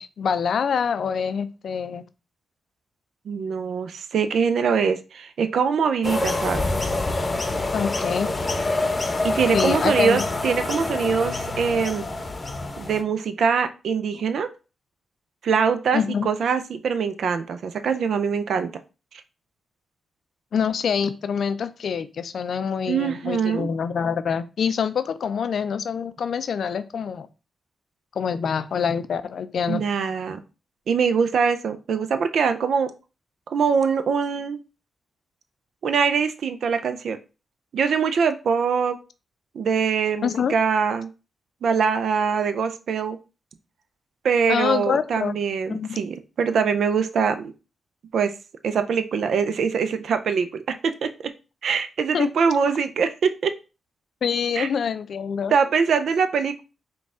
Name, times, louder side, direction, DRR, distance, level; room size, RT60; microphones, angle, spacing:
voice 1, 0.0-2.0 7.7-8.3 9.5-10.2 15.9-16.3 20.5-27.3 28.2-29.8 40.2-40.5 44.5-45.4 45.7-46.0 52.1-52.3 54.2-55.5, left 7 dB, 70° left, 12 dB, 0.4 m, -25 dB
voice 2, 3.3-6.7 9.2-12.1 12.8-14.5 15.4-18.7 22.9-23.7 29.7-30.4 30.9-32.9 33.5-34.6 35.8-37.2 37.7-39.0 39.5-41.1 41.6-43.2 44.2-47.5 48.1-48.3 48.6-51.3 51.6-53.5 54.6-54.7 55.5-56.6, right 6 dB, 70° right, 10 dB, 0.4 m, -23 dB
sound 1, 6.0-13.0, left 2 dB, 35° left, 0.7 m, -26 dB
3.8 x 2.2 x 3.6 m, 0.31 s
supercardioid pair, 45°, 0 cm